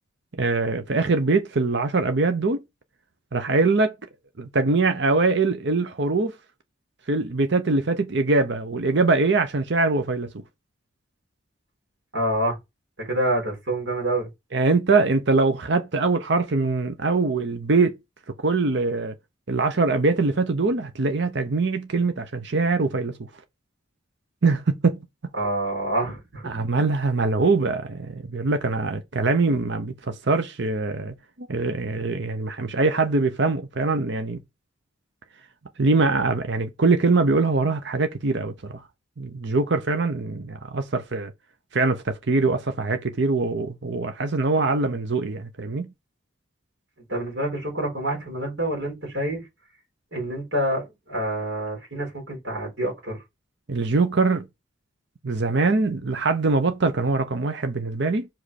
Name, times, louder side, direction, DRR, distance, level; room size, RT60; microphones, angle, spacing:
voice 1, 0.3-2.6 3.3-3.9 4.4-6.3 7.1-10.4 14.5-18.0 18.4-19.1 19.5-23.1 24.4-25.0 26.4-34.4 35.8-38.8 39.2-41.3 41.7-45.9 53.7-54.5 55.2-58.3, right 3 dB, 55° right, 0.7 m, -23 dB
voice 2, 12.1-12.6 13.0-14.3 25.4-26.5 47.1-49.4 50.1-53.2, right 1 dB, 75° right, 4.2 m, -27 dB
5.9 x 5.1 x 4.2 m
head